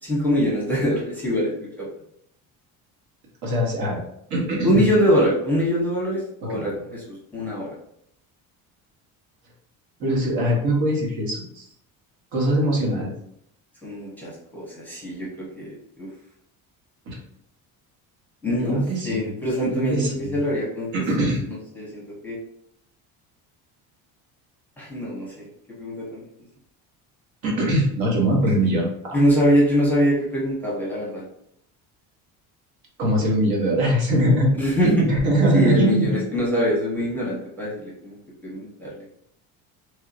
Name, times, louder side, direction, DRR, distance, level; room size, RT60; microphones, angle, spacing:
voice 1, 0.0-1.9 3.8-3.9 4.6-7.7 13.8-16.1 18.4-22.4 24.8-25.5 25.8-26.3 28.4-28.5 29.1-31.2 34.6-35.1 35.5-39.0, equal, 5° left, -6 dB, 0.8 m, -24 dB
voice 2, 3.4-4.0 4.3-4.8 6.5-6.7 10.0-11.7 12.3-13.1 17.1-17.2 18.6-19.3 19.7-20.4 20.9-21.4 27.4-29.2 33.0-34.5 34.8-36.1, right 1 dB, 65° right, -2 dB, 1.3 m, -22 dB
3.2 x 2.7 x 2.5 m, 0.71 s
cardioid pair, 135°, 39 cm